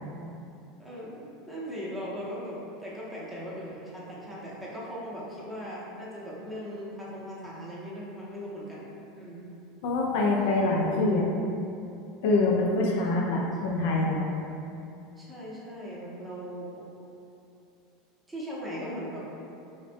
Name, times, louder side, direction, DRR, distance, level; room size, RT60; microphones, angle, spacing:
voice 1, 0.8-8.9 9.2-9.5 13.2-13.4 15.2-16.9 18.3-19.3, equal, 10° right, -7 dB, 0.7 m, -39 dB
voice 2, 9.8-11.3 12.2-14.2, left 2 dB, 65° left, -2 dB, 0.3 m, -25 dB
2.4 x 2.1 x 2.6 m, 2.7 s
hypercardioid pair, 80°, 0 cm